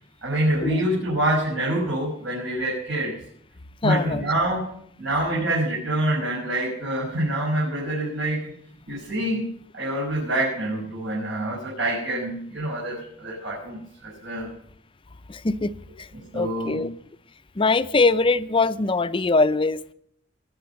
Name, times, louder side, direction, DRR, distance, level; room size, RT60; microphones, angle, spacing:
voice 1, 0.2-3.1 3.8-4.7 5.0-8.5 8.9-14.5 16.3-16.9, right 1 dB, 80° right, 5.9 m, -26 dB
voice 2, 3.8-4.2 15.3-15.7 16.3-16.9 17.6-19.9, left 3 dB, 25° left, 0.5 m, -22 dB
21.5 x 7.2 x 6.9 m
head